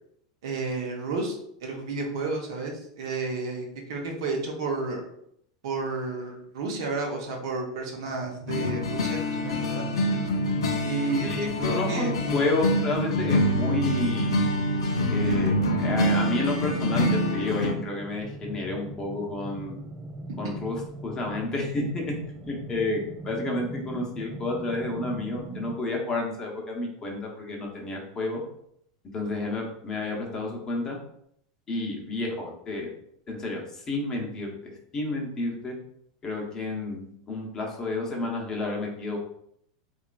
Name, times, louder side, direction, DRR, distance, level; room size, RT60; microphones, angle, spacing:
voice 1, 0.4-1.3 1.6-5.0 5.6-9.8 10.8-12.1 20.4-20.5, right 3 dB, 75° right, 1 dB, 0.7 m, -31 dB
sound 1, 8.1-25.8, right 2 dB, 25° right, 0.4 m, -41 dB
sound 2, 8.5-17.7, left 1 dB, 85° left, 0.4 m, -26 dB
voice 2, 11.2-14.4 15.1-19.8 20.4-22.1 22.4-28.4 29.1-31.0 31.7-32.9 33.3-34.5 34.9-35.7 36.2-39.2, left 2 dB, 25° left, -1 dB, 0.8 m, -30 dB
2.9 x 2.4 x 2.3 m, 0.71 s
hypercardioid pair, 105°, 3 cm